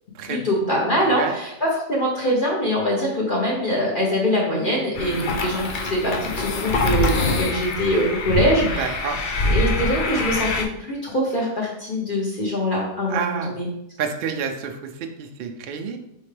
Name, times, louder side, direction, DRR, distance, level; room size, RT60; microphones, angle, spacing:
voice 1, 0.2-9.0 9.5-13.7, equal, 45° left, -5 dB, 0.9 m, -23 dB
voice 2, 1.0-1.4 5.0-5.3 8.6-9.2 13.1-13.6 14.0-16.0, right 6 dB, 70° right, 3 dB, 0.5 m, -29 dB
sound 1, 4.9-10.6, left 3 dB, 65° left, 0.5 m, -24 dB
4.2 x 3.7 x 3.2 m, 0.84 s
omnidirectional pair, 1.5 m